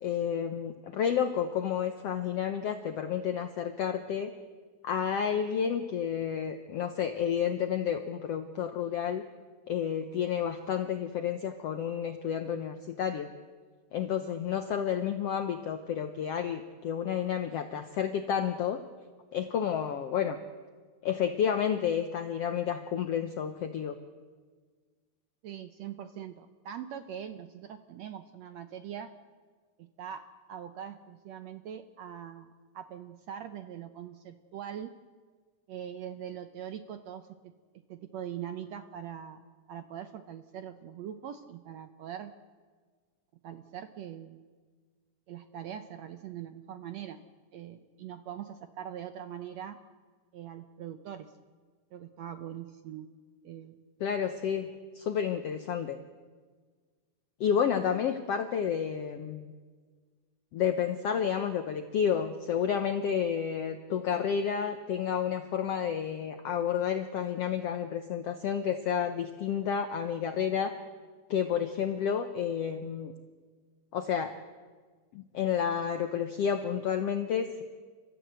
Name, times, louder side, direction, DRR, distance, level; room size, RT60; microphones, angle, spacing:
voice 1, 0.0-4.3 4.8-9.2 9.7-13.3 13.9-18.8 19.3-20.4 21.0-24.0 54.0-54.7 54.9-56.0 57.4-59.5 60.5-70.7 71.3-73.1 73.9-74.3 75.1-77.6, left 8 dB, 75° left, 8 dB, 1.4 m, -30 dB
voice 2, 25.4-29.1 29.8-34.9 35.7-42.3 43.4-44.4 45.3-47.2 47.5-49.8 50.3-51.3 51.9-53.1 53.4-53.8, right 9 dB, 75° right, 8 dB, 1.6 m, -42 dB
30.0 x 14.0 x 8.0 m, 1.5 s
omnidirectional pair, 4.0 m